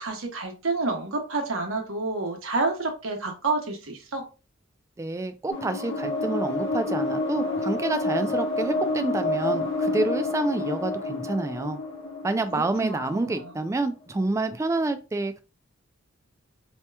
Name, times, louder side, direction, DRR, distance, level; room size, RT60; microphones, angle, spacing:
voice 1, 0.0-4.2 12.5-13.5, right 3 dB, 90° right, 1.0 m, -29 dB
voice 2, 5.0-11.8 12.2-15.4, right 2 dB, 15° right, 0.3 m, -28 dB
sound 1, 5.5-13.6, left 2 dB, 65° left, 1.0 m, -29 dB
4.3 x 2.9 x 2.2 m
head